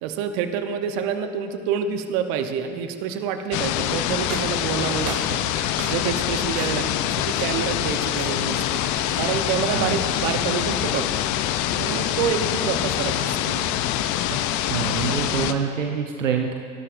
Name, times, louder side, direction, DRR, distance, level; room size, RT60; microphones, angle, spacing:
voice 1, 0.0-11.1 11.8-13.8, right 7 dB, 65° right, 7 dB, 1.0 m, -28 dB
sound 1, 3.5-15.5, left 11 dB, 55° left, 0.7 m, -25 dB
sound 2, 4.3-6.2 6.5-7.0 7.3-7.7 8.1-8.6 9.1-9.5, right 9 dB, 40° right, 0.8 m, -40 dB
voice 2, 14.7-16.6, right 7 dB, 90° right, 3 dB, 0.8 m, -26 dB
24.5 x 12.0 x 2.6 m, 2.3 s
hypercardioid pair, 65°, 37 cm